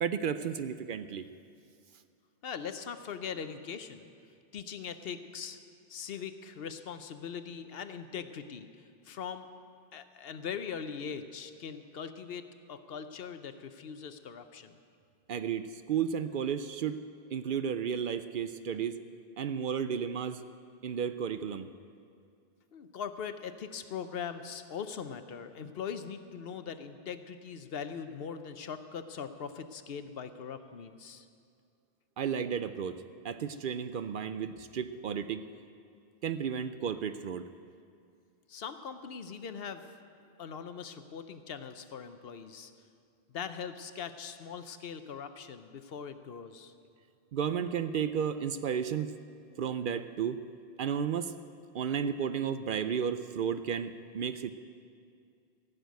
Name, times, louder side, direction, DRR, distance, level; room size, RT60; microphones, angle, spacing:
voice 1, 0.0-1.3 15.3-17.0 17.3-18.9 19.4-20.4 20.8-21.7 32.2-33.0 33.2-35.4 36.2-37.5 47.3-49.1 49.6-50.4 50.8-51.3 51.7-54.5, right 7 dB, 60° right, 11 dB, 0.6 m, -33 dB
voice 2, 2.4-4.1 4.5-5.6 5.9-9.5 9.9-14.8 22.7-31.3 38.5-39.9 40.4-42.7 43.3-46.7, left 7 dB, 70° left, 10 dB, 0.9 m, -41 dB
15.5 x 6.8 x 9.3 m, 2.4 s
omnidirectional pair, 1.0 m